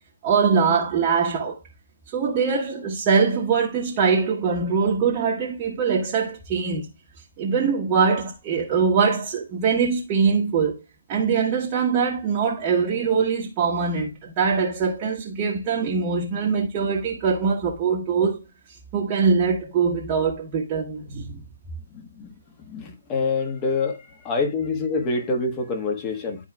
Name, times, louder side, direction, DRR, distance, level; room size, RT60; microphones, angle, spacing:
voice 1, 0.2-1.6 2.1-6.9 7.4-10.8 11.1-18.4 18.9-21.5, right 5 dB, 25° right, 1.2 m, -22 dB
voice 2, 21.9-22.3 22.7-24.0 24.2-26.4, left 3 dB, 20° left, 1.5 m, -26 dB
11.5 x 4.7 x 2.3 m
figure-of-eight pair, 135°, 0 cm